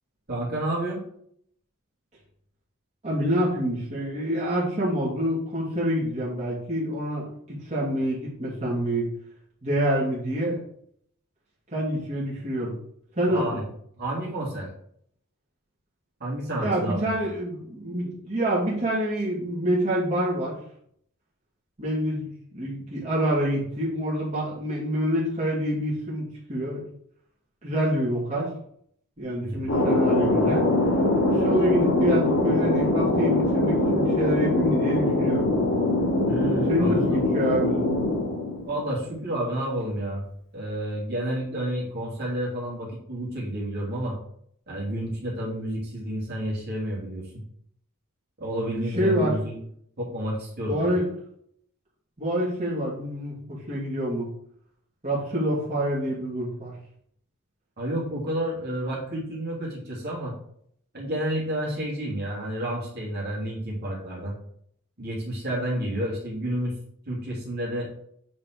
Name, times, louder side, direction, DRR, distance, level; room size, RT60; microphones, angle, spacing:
voice 1, 0.3-1.0 13.3-13.6 14.0-14.7 16.2-17.0 29.4-29.7 36.3-37.2 38.7-40.3 40.5-44.2 44.7-47.3 48.4-49.6 50.0-50.9 57.8-60.3 60.9-64.3 65.0-66.7 67.1-67.9, right 1 dB, 50° right, -4 dB, 3.0 m, -30 dB
voice 2, 3.0-9.0 9.6-10.6 11.7-12.7 13.2-13.6 16.6-20.6 21.8-26.8 27.6-28.5 29.2-30.7 31.3-35.5 36.6-37.9 48.9-49.3 50.7-51.1 52.2-54.3 55.0-56.7, equal, 35° right, -7 dB, 2.8 m, -27 dB
Thunder, 29.7-39.0, left 2 dB, 70° left, 2.6 m, -23 dB
8.3 x 4.6 x 4.7 m, 0.67 s
head